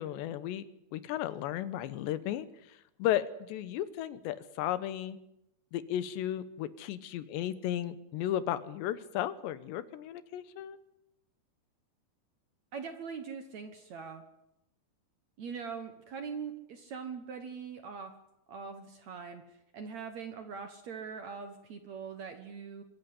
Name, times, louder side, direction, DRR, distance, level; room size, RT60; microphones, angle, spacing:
voice 1, 0.0-5.2 5.7-10.8, left 12 dB, 80° left, 14 dB, 3.2 m, -34 dB
voice 2, 12.7-14.2 15.4-18.1 18.5-22.8, right 6 dB, 60° right, 7 dB, 1.9 m, -42 dB
24.5 x 14.0 x 9.8 m, 0.83 s
omnidirectional pair, 5.0 m